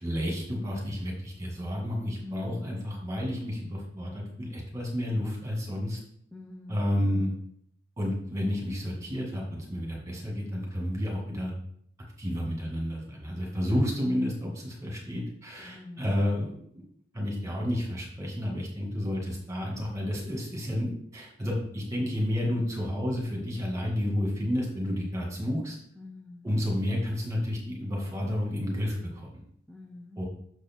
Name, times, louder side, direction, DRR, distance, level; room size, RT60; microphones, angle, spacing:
voice 1, 0.0-6.0 6.7-7.3 8.0-11.5 12.2-16.8 17.1-25.8 26.4-29.4 30.2-30.3, left 1 dB, 15° right, -2 dB, 2.0 m, -31 dB
voice 2, 2.2-2.7 6.3-7.4 15.7-16.0 26.0-26.5 29.7-30.2, left 2 dB, ahead, 0 dB, 0.6 m, -45 dB
6.6 x 4.8 x 4.5 m, 0.68 s
head